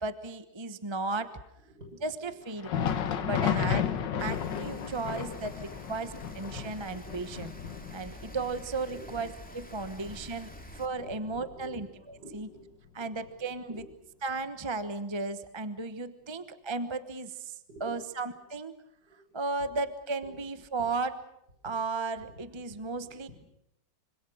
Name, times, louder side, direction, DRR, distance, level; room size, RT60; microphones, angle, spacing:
voice 1, 0.0-1.3 2.0-2.7 3.2-3.9 4.2-7.5 7.9-10.5 10.8-12.5 12.9-13.9 14.2-18.7 19.3-21.2 21.6-23.3, right 3 dB, 20° right, 11 dB, 0.9 m, -35 dB
voice 2, 1.1-2.3 4.1-4.4 5.2-5.4 7.1-7.3 8.8-9.1 11.0-11.8 12.1-12.7 13.0-13.3 13.6-13.9 15.7-15.8 17.7-18.0 19.0-19.3 19.6-19.7 20.2-20.4 20.8-20.9 21.6-21.8 22.2-23.3, right 1 dB, 55° right, 2 dB, 8.1 m, -52 dB
Thunder, 2.5-11.9 12.3-12.4 13.1-13.3 14.3-14.4, left 8 dB, 70° left, 1.8 m, -34 dB
Rain, 4.2-10.9, equal, 5° left, 2.5 m, -48 dB
25.5 x 25.5 x 6.4 m, 0.78 s
omnidirectional pair, 2.0 m